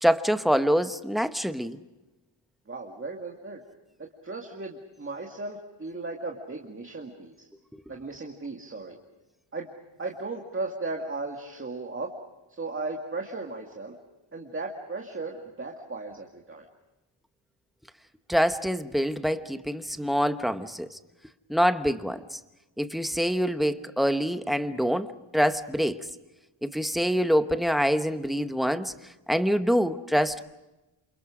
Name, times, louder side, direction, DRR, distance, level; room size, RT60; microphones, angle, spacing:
voice 1, 0.0-1.8 18.3-21.0 21.5-22.4 22.8-25.1 25.3-26.0 26.6-28.9 29.3-30.4, equal, ahead, 9 dB, 1.0 m, -25 dB
voice 2, 2.7-3.6 4.0-7.5 7.9-9.0 9.5-9.7 10.0-12.1 12.6-14.0 14.3-16.7, right 3 dB, 25° right, 1 dB, 2.2 m, -36 dB
29.0 x 28.0 x 5.0 m, 1.0 s
wide cardioid pair, 140°, 49 cm